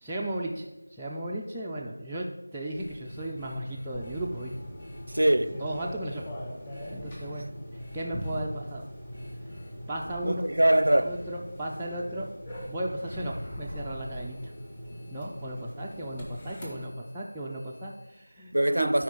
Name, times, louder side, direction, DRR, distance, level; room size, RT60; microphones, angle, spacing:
voice 1, 0.0-2.3 2.5-4.5 5.6-6.3 6.9-8.9 9.9-10.5 11.0-12.3 12.7-14.5 15.1-18.9, right 1 dB, 5° right, 0.3 m, -35 dB
sound 1, 2.8-5.4 5.7-6.3 6.7-7.3 7.8-8.4 9.1-9.7 10.8-11.3 12.5-18.3, left 1 dB, 40° left, 2.6 m, -46 dB
sound 2, 3.9-16.9, equal, 15° left, 1.0 m, -41 dB
voice 2, 5.1-5.6 10.2-11.2 18.5-19.0, right 1 dB, 75° right, 0.5 m, -23 dB
13.0 x 4.7 x 3.8 m
figure-of-eight pair, 170°, 0 cm